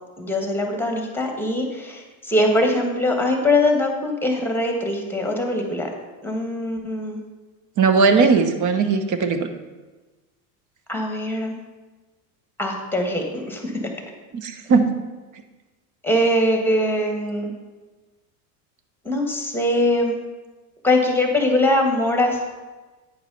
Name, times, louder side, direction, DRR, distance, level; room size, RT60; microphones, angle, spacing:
voice 1, 0.2-5.9 6.2-7.2 10.9-11.5 12.6-13.7 16.0-17.5 19.0-20.2 20.8-22.4, left 1 dB, 5° left, 2 dB, 1.5 m, -22 dB
voice 2, 7.8-9.5 14.3-14.8, right 4 dB, 40° right, 8 dB, 1.0 m, -18 dB
9.3 x 4.7 x 5.4 m, 1.2 s
supercardioid pair, 100°, 46 cm